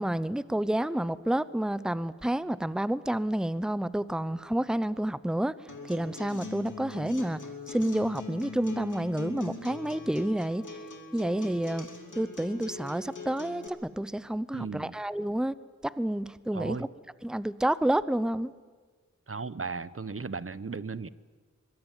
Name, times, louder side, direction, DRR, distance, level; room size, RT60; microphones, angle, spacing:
voice 1, 0.0-5.5 5.9-7.4 7.7-10.6 11.1-11.9 12.2-15.5 15.8-16.8 17.2-18.5, right 1 dB, ahead, 17 dB, 0.8 m, -29 dB
Acoustic guitar, 5.7-13.7, left 3 dB, 85° left, 3.1 m, -42 dB
voice 2, 14.5-14.9 16.5-16.9 19.3-21.1, right 4 dB, 45° right, 17 dB, 0.9 m, -36 dB
24.0 x 21.5 x 9.2 m, 1.5 s
wide cardioid pair, 55°, 30 cm